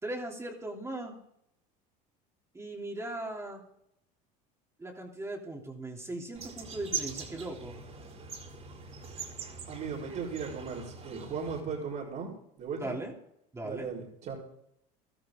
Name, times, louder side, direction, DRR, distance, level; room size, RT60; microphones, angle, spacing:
voice 1, 0.0-1.1 2.5-3.6 4.8-7.8 12.8-13.1 13.5-13.9, right 1 dB, 15° right, -1 dB, 3.2 m, -38 dB
sound 1, 6.3-11.6, right 5 dB, 35° right, 4.1 m, -41 dB
voice 2, 9.7-12.3 12.6-13.0 13.6-14.3, right 5 dB, 50° right, -7 dB, 4.5 m, -37 dB
15.0 x 13.0 x 3.8 m, 0.77 s
supercardioid pair, 110°, 19 cm